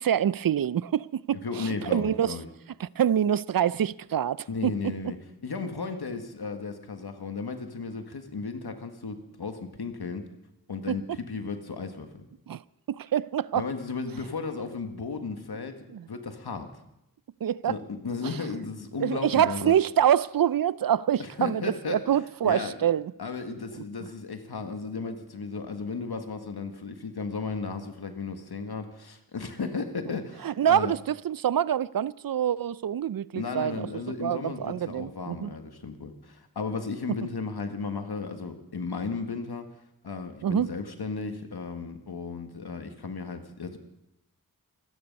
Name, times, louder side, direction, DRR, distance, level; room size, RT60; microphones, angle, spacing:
voice 1, 0.0-2.4 2.8-4.7 10.9-11.0 12.5-12.6 12.9-13.6 15.9-16.1 17.4-17.7 19.0-23.1 30.4-35.5 40.4-40.7, right 10 dB, 65° right, 0.5 m, -26 dB
voice 2, 1.4-2.5 4.5-5.2 5.4-10.2 10.7-12.3 13.5-16.7 17.6-19.8 21.2-22.0 22.4-22.7 23.2-30.9 33.3-39.7 40.0-43.8, left 4 dB, 90° left, 1.7 m, -35 dB
25.0 x 9.7 x 5.3 m
cardioid pair, 45°, 37 cm